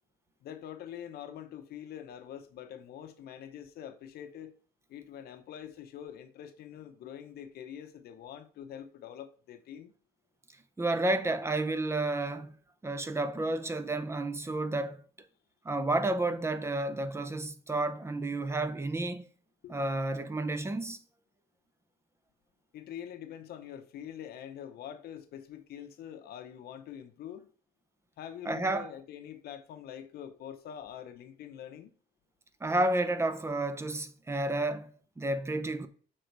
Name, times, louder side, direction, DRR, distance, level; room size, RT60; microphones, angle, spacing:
voice 1, 0.4-4.5 4.9-9.9 19.6-19.7 22.7-27.5 28.2-31.9, left 9 dB, 65° left, 0.9 m, -45 dB
voice 2, 10.8-12.5 12.8-15.0 15.6-19.3 19.7-21.0 28.4-28.9 32.6-34.9 35.2-35.9, right 2 dB, 15° right, 0.8 m, -31 dB
6.7 x 3.8 x 4.6 m
cardioid pair, 110°, 17 cm